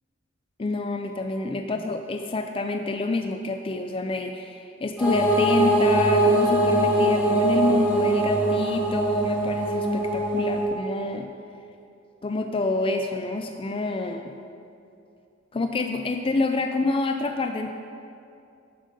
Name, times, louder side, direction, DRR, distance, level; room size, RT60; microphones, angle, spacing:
voice 1, 0.6-11.3 12.2-14.3 15.5-17.7, left 3 dB, 25° left, 6 dB, 0.4 m, -27 dB
sound 1, 5.0-10.6, right 1 dB, 5° right, 2.7 m, -22 dB
10.5 x 7.6 x 5.2 m, 2.6 s
head